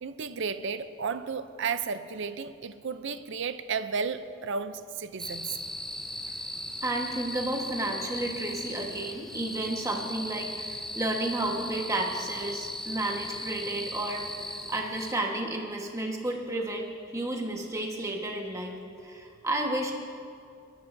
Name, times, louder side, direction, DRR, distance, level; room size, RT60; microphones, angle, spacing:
voice 1, 0.0-5.6, right 5 dB, 55° right, 11 dB, 0.5 m, -33 dB
sound 1, 5.2-15.1, left 1 dB, ahead, 0.5 m, -38 dB
voice 2, 6.8-19.9, right 1 dB, 15° right, 0 dB, 1.3 m, -32 dB
22.0 x 13.5 x 2.7 m, 2.4 s
head